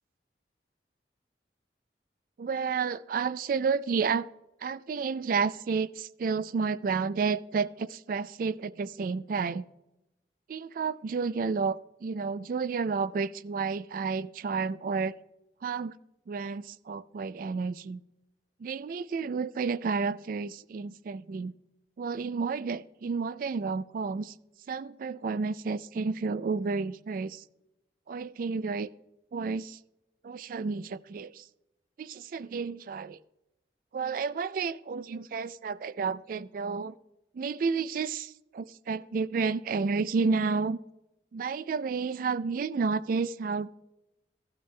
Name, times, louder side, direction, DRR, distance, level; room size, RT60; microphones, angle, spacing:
voice 1, 2.4-4.3 4.6-9.6 10.5-15.1 15.6-16.0 16.3-18.0 18.6-21.5 22.0-24.3 24.7-27.4 28.1-28.9 29.3-29.8 30.2-31.4 32.0-33.2 33.9-37.0 37.3-40.8 41.3-43.7, right 5 dB, 50° right, 0.3 m, -31 dB
14.5 x 12.5 x 2.2 m
head